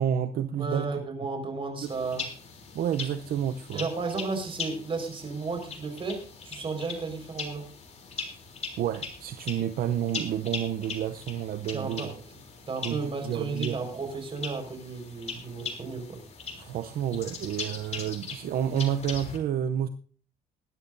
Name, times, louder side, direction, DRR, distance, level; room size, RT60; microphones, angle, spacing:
voice 1, 0.0-0.9 1.8-1.9 2.7-3.9 8.8-12.1 12.8-13.8 16.6-19.9, right 10 dB, 60° right, 10 dB, 0.7 m, -29 dB
voice 2, 0.6-2.3 3.7-7.7 11.7-12.2 12.7-16.2, right 4 dB, 30° right, 4 dB, 5.0 m, -33 dB
sound 1, 1.8-19.4, left 5 dB, 40° left, 3.4 m, -40 dB
20.0 x 11.0 x 2.7 m, 0.41 s
cardioid pair, 110°, 17 cm